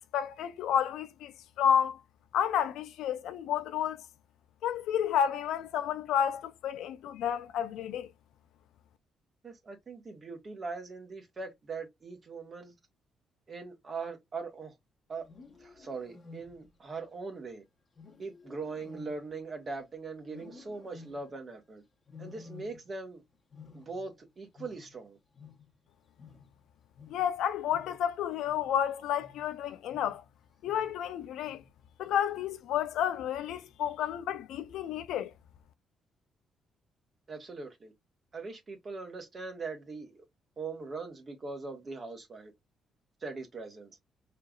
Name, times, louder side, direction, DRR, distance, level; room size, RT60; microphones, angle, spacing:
voice 1, 0.1-1.3 1.6-2.0 2.3-4.0 4.6-8.1 27.1-30.2 30.6-31.6 32.0-35.3, left 9 dB, 85° left, 0.6 m, -30 dB
voice 2, 9.4-12.7 13.5-14.7 15.1-15.2 15.6-17.6 18.2-21.8 22.2-23.2 23.7-25.2 37.3-37.9 38.3-40.2 40.6-42.5 43.2-44.0, right 4 dB, 40° right, 1.5 m, -41 dB
Wild animals, 15.1-16.9 17.9-19.8 20.3-21.5 22.1-23.1 23.4-25.9 26.1-31.1 31.4-31.9 32.3-32.7 33.5-33.9, left 5 dB, 35° left, 1.3 m, -53 dB
4.7 x 3.3 x 2.4 m
cardioid pair, 90°, 0 cm